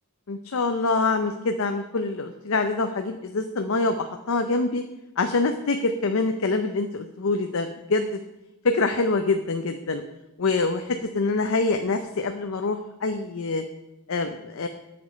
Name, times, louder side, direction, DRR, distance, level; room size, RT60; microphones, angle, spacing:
voice 1, 0.3-4.8 5.2-8.2 8.6-10.0 10.4-13.6 14.1-14.7, left 3 dB, 70° left, 6 dB, 0.6 m, -25 dB
9.5 x 7.1 x 5.2 m, 0.94 s
head